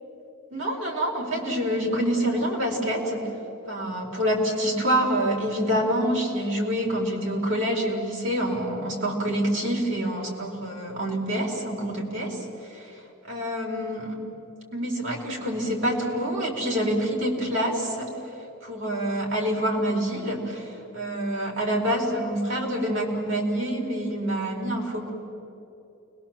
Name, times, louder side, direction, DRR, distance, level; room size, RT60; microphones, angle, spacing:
voice 1, 0.5-3.2 3.7-12.4 12.7-12.9 13.3-14.2 14.7-18.1 18.6-25.1, equal, 60° right, -1 dB, 4.5 m, -26 dB
29.5 x 21.5 x 7.5 m, 3.0 s
head